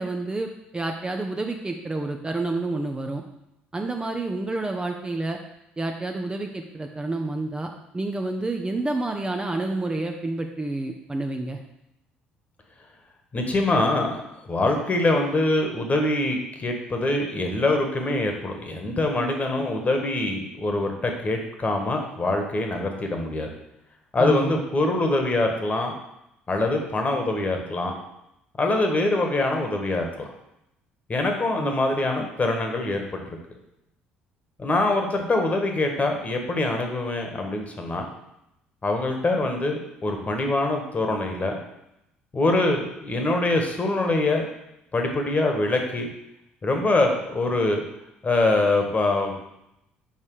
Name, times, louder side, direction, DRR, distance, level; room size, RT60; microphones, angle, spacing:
voice 1, 0.0-3.2 3.7-5.4 5.8-11.6 19.6-19.7 24.2-24.6 31.6-31.7, right 2 dB, 15° right, 3 dB, 0.7 m, -29 dB
voice 2, 13.3-23.5 24.1-25.9 26.5-27.9 28.6-30.3 31.1-33.2 34.6-38.1 38.8-41.5 42.3-44.4 44.9-46.1 46.6-47.8 48.2-49.4, left 2 dB, 25° left, 3 dB, 1.5 m, -24 dB
7.2 x 5.4 x 4.8 m, 0.85 s
figure-of-eight pair, 50°, 5 cm